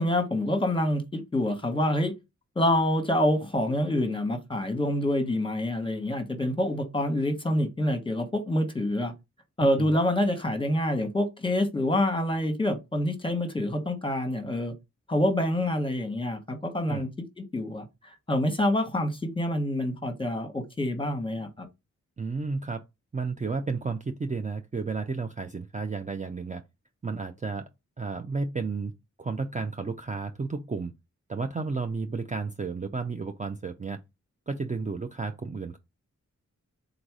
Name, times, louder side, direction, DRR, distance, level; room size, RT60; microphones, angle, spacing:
voice 1, 0.0-2.1 2.6-9.1 9.6-14.7 15.1-17.1 17.4-21.7, left 1 dB, 15° left, 1.1 m, -27 dB
voice 2, 9.6-9.9 16.9-17.1 22.2-22.8 23.1-26.6 27.0-27.7 28.0-28.9 29.2-30.9 31.3-34.0 34.5-35.8, right 4 dB, 25° right, 0.4 m, -32 dB
4.0 x 2.6 x 4.6 m
cardioid pair, 60°, 30 cm